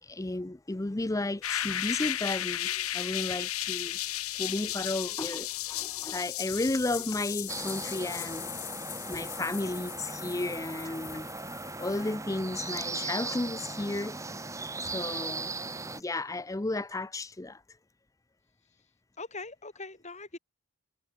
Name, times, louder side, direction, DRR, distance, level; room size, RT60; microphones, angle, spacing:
voice 1, 0.0-4.0 4.3-8.5 9.1-11.3 11.8-14.4 14.8-15.5 15.9-17.6, left 2 dB, 15° left, 0.5 m, -33 dB
sound 1, 1.4-12.1, left 13 dB, 70° left, 1.5 m, -35 dB
sound 2, 7.5-16.0, right 3 dB, 15° right, 1.2 m, -38 dB
voice 2, 19.2-20.4, left 3 dB, 30° left, 5.8 m, -41 dB
head